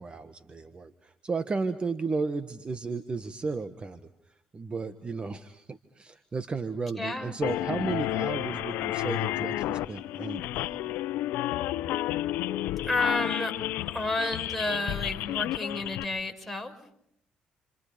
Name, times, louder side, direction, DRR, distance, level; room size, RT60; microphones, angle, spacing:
voice 1, 0.0-4.0 4.5-10.7, right 4 dB, 35° right, 10 dB, 1.5 m, -34 dB
voice 2, 7.0-7.4 12.8-16.7, left 2 dB, ahead, 2 dB, 5.6 m, -31 dB
sound 1, 7.4-16.0, left 14 dB, 80° left, 0.9 m, -31 dB
30.0 x 27.5 x 5.2 m, 0.72 s
supercardioid pair, 70°, 3 cm